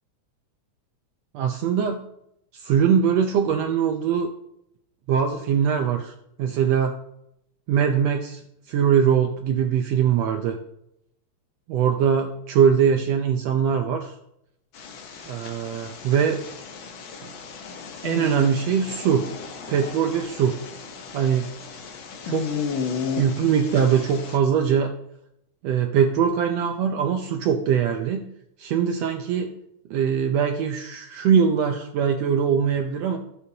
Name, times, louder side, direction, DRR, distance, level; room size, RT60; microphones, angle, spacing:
voice 1, 1.3-2.0 2.5-4.3 5.1-6.9 7.7-8.4 8.7-10.6 11.7-14.1 15.2-16.4 18.0-19.3 19.7-20.6 21.1-21.5 22.2-22.5 23.2-24.9 25.6-28.3 28.6-29.5 29.9-33.2, right 7 dB, 75° right, 5 dB, 1.7 m, -22 dB
sound 1, 14.7-24.4, left 6 dB, 60° left, 1.3 m, -34 dB
16.0 x 6.9 x 2.8 m, 0.79 s
omnidirectional pair, 3.4 m